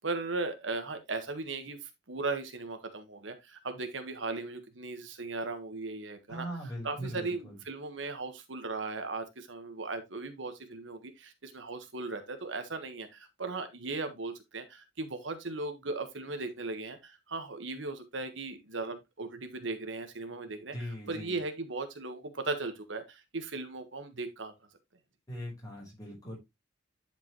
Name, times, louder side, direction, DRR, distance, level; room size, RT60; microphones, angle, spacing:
voice 1, 0.0-6.5 6.8-24.5, right 3 dB, 75° right, 1.4 m, -37 dB
voice 2, 6.3-7.6 20.7-21.4 25.3-26.4, equal, 20° left, 4.9 m, -40 dB
10.5 x 5.3 x 3.1 m
head